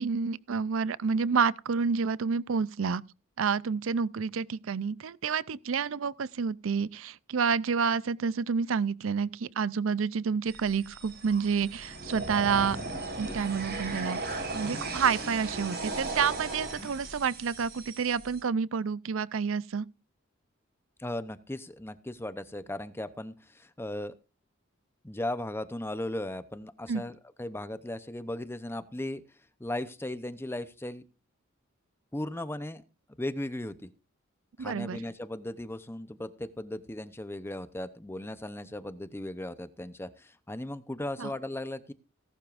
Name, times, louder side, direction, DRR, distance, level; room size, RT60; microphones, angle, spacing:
voice 1, 0.0-3.0 3.4-12.8 13.2-19.9 26.9-27.0 34.6-35.0 41.2-41.3, right 6 dB, 70° right, 0.5 m, -29 dB
sound 1, 10.5-18.4, right 2 dB, 55° right, 6.3 m, -37 dB
voice 2, 21.0-24.1 25.0-29.2 29.6-31.0 32.1-32.8 33.2-33.9 34.6-41.9, left 1 dB, 10° left, 0.7 m, -37 dB
17.5 x 12.0 x 2.5 m
head